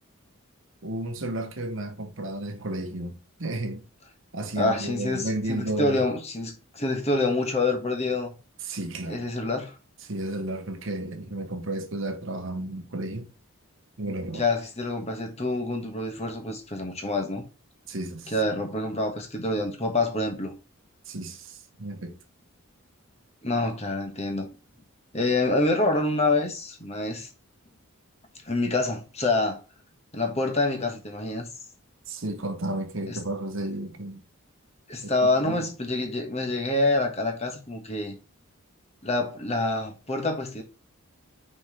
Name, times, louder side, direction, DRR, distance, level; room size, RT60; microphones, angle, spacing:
voice 1, 0.8-3.8 4.3-6.0 8.6-9.3 10.0-13.3 14.0-14.5 17.9-18.3 21.1-22.2 32.1-34.2 35.0-35.1 35.4-35.6, right 1 dB, 55° right, 1.0 m, -33 dB
voice 2, 4.5-8.3 9.1-9.7 14.3-17.4 18.3-20.5 23.4-24.5 25.1-27.3 28.4-29.6 30.1-31.5 33.1-33.2 34.9-38.1 39.0-40.6, left 2 dB, 30° left, 1.4 m, -27 dB
5.5 x 4.4 x 4.2 m
head